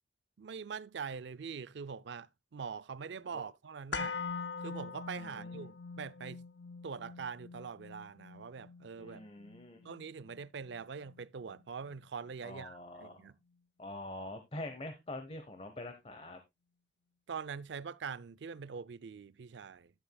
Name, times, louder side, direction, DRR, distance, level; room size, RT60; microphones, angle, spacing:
voice 1, 0.4-4.2 4.6-6.4 6.8-9.2 9.8-13.3 17.3-19.9, right 6 dB, 70° right, 0.4 m, -43 dB
sound 1, 3.9-12.0 12.3-12.4, left 5 dB, 65° left, 0.6 m, -44 dB
voice 2, 5.2-5.7 9.0-9.9 12.4-13.2 13.8-16.4, left 1 dB, 30° left, 1.0 m, -45 dB
11.0 x 9.8 x 2.3 m
head